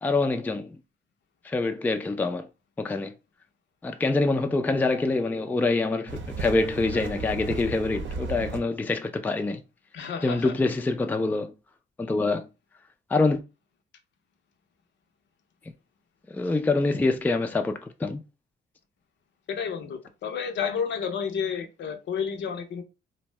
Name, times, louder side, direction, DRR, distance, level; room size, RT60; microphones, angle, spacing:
voice 1, 0.0-0.8 1.4-2.5 2.8-3.1 3.8-9.6 10.2-11.5 12.0-12.4 13.1-13.4 16.3-18.2, left 3 dB, 10° left, 0.3 m, -25 dB
sound 1, 6.1-8.6, right 3 dB, 70° right, 0.7 m, -34 dB
voice 2, 9.9-10.5 19.5-22.8, left 7 dB, 65° left, 0.6 m, -31 dB
2.6 x 2.1 x 3.2 m
cardioid pair, 90°, 20 cm